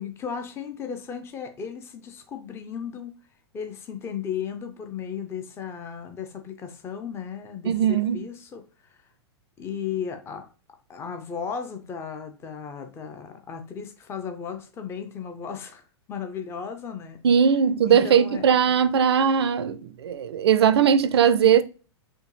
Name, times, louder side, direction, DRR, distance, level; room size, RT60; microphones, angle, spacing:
voice 1, 0.0-3.1 3.5-8.6 8.9-9.0 9.6-10.5 10.9-15.8 16.1-17.2 17.9-18.4, left 7 dB, 15° left, 0.5 m, -35 dB
voice 2, 7.6-8.2 17.2-21.6, right 8 dB, 65° right, 0.4 m, -19 dB
4.4 x 2.6 x 3.0 m
figure-of-eight pair, 100°, 15 cm